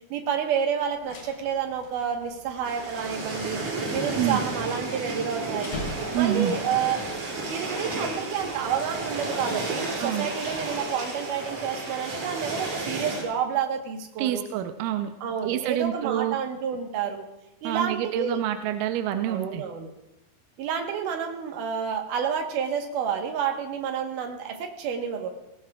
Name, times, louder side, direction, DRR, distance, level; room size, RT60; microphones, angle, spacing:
voice 1, 0.1-3.6 3.9-5.8 6.1-7.0 7.5-14.4 15.2-17.3 17.6-18.4 19.3-19.9 20.6-25.3, right 7 dB, 65° right, 3 dB, 2.5 m, -29 dB
sound 1, 0.8-6.6, left 2 dB, 65° left, 4.2 m, -43 dB
sound 2, 2.6-13.2, right 2 dB, 45° right, 3.6 m, -32 dB
voice 2, 6.1-6.6 10.0-10.3 14.2-15.1 15.4-16.4 17.6-19.6, right 12 dB, 85° right, 8 dB, 1.9 m, -27 dB
19.5 x 16.5 x 2.3 m, 0.92 s
omnidirectional pair, 4.5 m